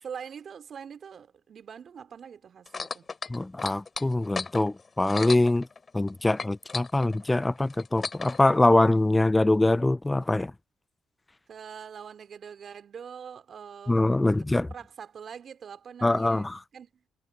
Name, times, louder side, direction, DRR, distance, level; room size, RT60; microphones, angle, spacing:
voice 1, 0.0-3.1 11.5-17.0, right 7 dB, 55° right, 2.7 m, -44 dB
sound 1, 2.7-6.1 6.4-8.4 9.2-9.3, left 4 dB, 40° left, 4.4 m, -35 dB
voice 2, 3.3-5.7 5.9-10.5 13.9-14.7 16.0-16.6, left 2 dB, 15° left, 0.5 m, -23 dB
hypercardioid pair, 50°, 0 cm